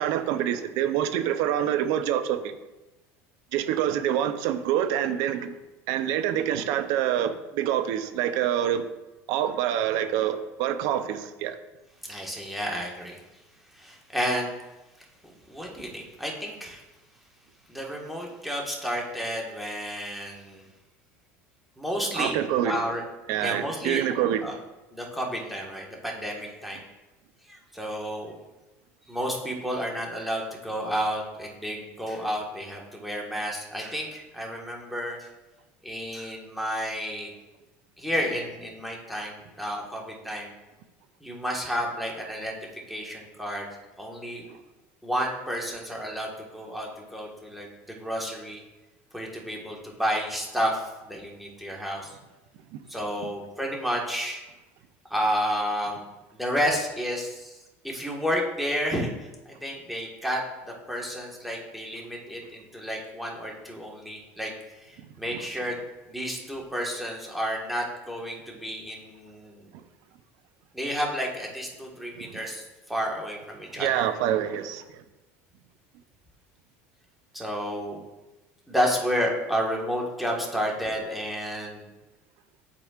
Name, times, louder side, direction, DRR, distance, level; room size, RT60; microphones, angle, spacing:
voice 1, 0.0-2.5 3.5-5.5 5.9-8.9 9.3-11.6 22.2-22.8 23.3-24.5 44.5-44.6 52.7-52.8 72.2-72.4 73.8-75.0, right 10 dB, 70° right, 10 dB, 0.6 m, -26 dB
voice 2, 12.0-13.2 13.7-14.5 15.2-16.8 17.7-20.7 21.8-22.4 22.6-23.0 23.4-24.0 24.4-24.5 24.9-26.8 27.5-28.3 29.1-35.3 35.8-37.3 38.0-40.5 41.2-42.6 42.9-43.7 44.0-44.4 45.0-48.6 49.1-52.1 52.9-54.4 55.1-56.1 56.3-57.6 57.8-64.5 64.8-65.8 66.1-69.6 70.7-74.1 77.3-78.0 78.7-81.8, equal, ahead, -2 dB, 1.6 m, -31 dB
11.0 x 4.2 x 2.5 m, 1.1 s
supercardioid pair, 100°, 7 cm